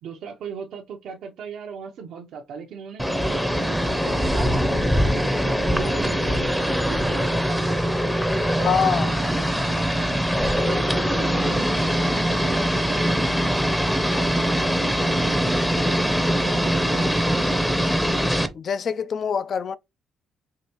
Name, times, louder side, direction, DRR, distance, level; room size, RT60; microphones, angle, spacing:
voice 1, 0.0-3.7 4.0-6.6 6.9-7.8 8.4-10.2 10.6-10.8 11.1-13.1 14.0-15.4 15.7-17.7, right 6 dB, 80° right, 0.6 m, -37 dB
sound 1, 3.0-18.5, equal, 5° left, 0.6 m, -22 dB
voice 2, 8.6-9.1 18.5-19.8, left 7 dB, 55° left, 0.3 m, -24 dB
4.7 x 2.5 x 2.9 m
cardioid pair, 90°, 0 cm